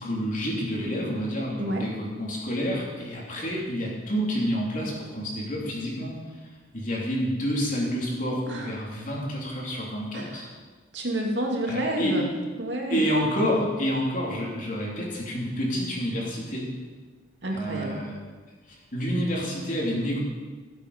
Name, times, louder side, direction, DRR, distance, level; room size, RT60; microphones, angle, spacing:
voice 1, 0.0-10.5 11.7-12.2 12.9-16.7 17.5-18.2 18.7-20.2, equal, 45° left, -3 dB, 3.3 m, -29 dB
voice 2, 1.6-1.9 8.5-8.7 10.1-10.5 10.9-12.3 12.6-13.1 17.4-18.0, right 1 dB, 70° right, 0 dB, 2.3 m, -29 dB
17.0 x 8.2 x 5.1 m, 1.4 s
head